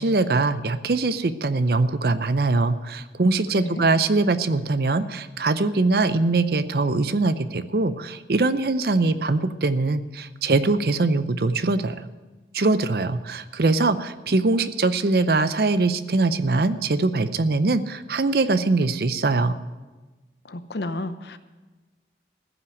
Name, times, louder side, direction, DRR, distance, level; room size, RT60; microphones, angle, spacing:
voice 1, 0.0-12.0 12.5-19.6, right 3 dB, 60° right, 13 dB, 0.6 m, -22 dB
voice 2, 20.4-21.4, left 2 dB, 70° left, 11 dB, 0.8 m, -32 dB
14.5 x 5.9 x 9.2 m, 1.2 s
head